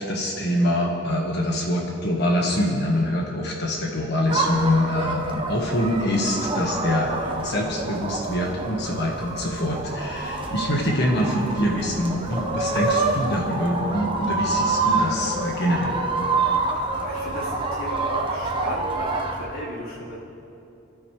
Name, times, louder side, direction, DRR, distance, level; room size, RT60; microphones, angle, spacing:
voice 1, 0.0-16.1, left 1 dB, 55° left, -1 dB, 1.6 m, -25 dB
sound 1, 4.3-19.4, right 3 dB, 25° right, 1.2 m, -27 dB
voice 2, 16.8-20.2, equal, 90° left, -7 dB, 4.0 m, -36 dB
24.0 x 12.5 x 3.4 m, 2.9 s
head